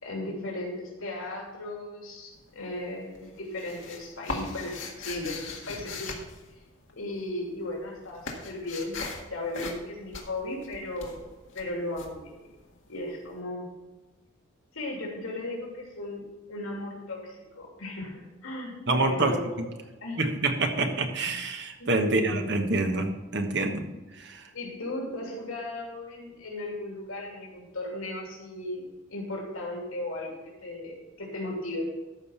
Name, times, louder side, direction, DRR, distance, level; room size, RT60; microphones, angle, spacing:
voice 1, 0.0-6.2 6.5-6.6 6.9-9.0 9.3-11.2 11.5-12.4 12.9-13.7 14.7-16.2 16.5-19.6 20.0-20.2 21.8-22.4 23.7-23.8 24.5-31.9, left 2 dB, 85° left, -2 dB, 2.9 m, -36 dB
sound 1, 2.3-2.9 3.1-7.2 7.5-13.1, left 3 dB, 65° left, 1.8 m, -39 dB
voice 2, 18.9-19.6 20.2-23.8 24.2-24.4, right 2 dB, 55° right, 5 dB, 1.3 m, -27 dB
13.0 x 5.3 x 5.6 m, 1.2 s
head